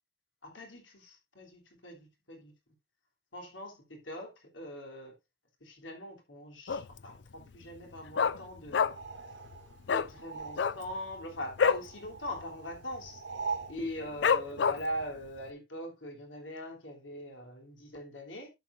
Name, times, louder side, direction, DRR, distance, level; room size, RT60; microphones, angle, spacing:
voice 1, 0.4-2.5 3.3-5.1 5.6-9.0 9.9-13.2 13.7-18.5, equal, 90° left, 3.3 m, -42 dB
Dog, 6.7-7.1 7.4-7.5 7.8-9.2 9.5-9.6 9.8-10.1 10.5-11.9 12.3-12.4 12.7-13.1 13.5-13.6 14.2-15.0 15.5-15.6, left 6 dB, 75° left, 0.4 m, -27 dB
sound 1, 8.8-11.0 11.3-13.8, right 5 dB, 80° right, 2.1 m, -42 dB
11.5 x 7.7 x 2.6 m
head